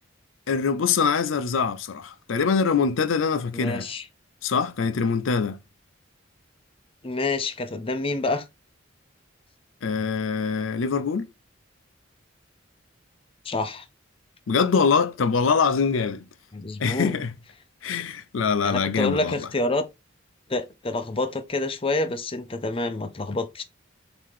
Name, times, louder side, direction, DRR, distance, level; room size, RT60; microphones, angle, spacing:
voice 1, 0.5-3.9 4.4-5.6 9.8-11.3 14.5-16.2 16.8-17.3 17.8-19.5, left 5 dB, 85° left, 0.5 m, -24 dB
voice 2, 3.5-4.1 7.0-8.4 13.4-13.8 16.5-17.1 18.6-19.9 20.5-23.6, left 2 dB, 30° left, 0.6 m, -27 dB
3.7 x 2.9 x 4.8 m
head